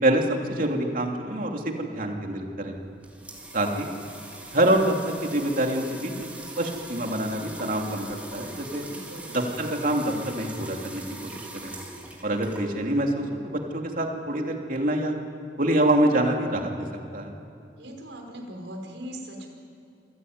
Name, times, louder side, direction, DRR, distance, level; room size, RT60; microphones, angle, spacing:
voice 1, 0.0-2.8 3.5-3.9 4.5-6.3 6.6-8.8 9.3-11.7 12.2-15.2 15.6-16.9 17.1-17.3, right 1 dB, 50° right, 2 dB, 3.2 m, -26 dB
sound 1, 2.7-13.0, right 1 dB, 10° right, 3.7 m, -41 dB
voice 2, 8.8-9.3 17.8-19.5, equal, 85° right, 2 dB, 5.4 m, -40 dB
27.5 x 16.5 x 9.7 m, 2.8 s
head